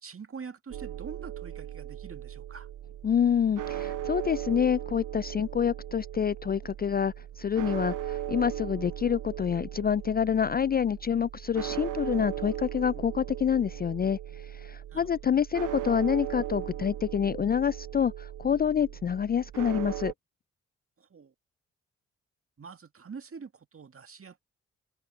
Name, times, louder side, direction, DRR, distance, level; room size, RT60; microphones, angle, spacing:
voice 1, 0.0-2.7 14.9-15.1 21.0-21.3 22.6-24.4, right 5 dB, 40° right, 2.0 m, -45 dB
sound 1, 0.7-20.1, right 11 dB, 65° right, 1.2 m, -38 dB
voice 2, 3.0-20.1, left 8 dB, 30° left, 0.4 m, -27 dB
hypercardioid pair, 40°, 34 cm